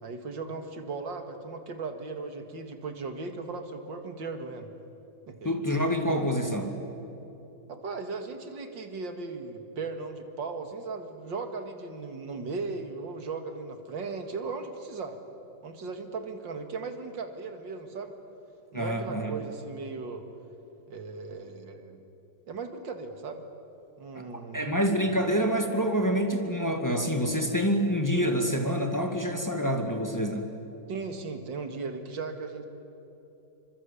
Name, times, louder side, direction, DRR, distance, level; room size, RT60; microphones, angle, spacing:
voice 1, 0.0-4.7 5.3-5.5 7.7-15.2 15.6-18.2 18.7-20.2 20.9-22.0 22.5-23.4 24.0-24.7 30.9-32.7, right 4 dB, 85° right, 6 dB, 2.7 m, -37 dB
voice 2, 5.4-6.7 18.7-19.3 24.1-24.2 24.5-30.5, equal, 10° left, 4 dB, 2.1 m, -27 dB
27.5 x 25.0 x 8.5 m, 3.0 s
omnidirectional pair, 2.0 m